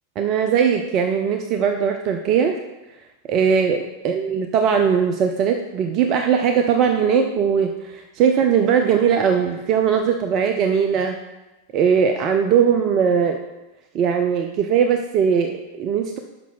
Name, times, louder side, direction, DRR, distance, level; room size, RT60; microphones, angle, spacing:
voice 1, 0.2-2.6 3.3-11.2 11.7-13.4 13.9-16.2, right 7 dB, 35° right, 5 dB, 0.6 m, -19 dB
6.0 x 5.7 x 6.2 m, 1.0 s
figure-of-eight pair, 90°, 0 cm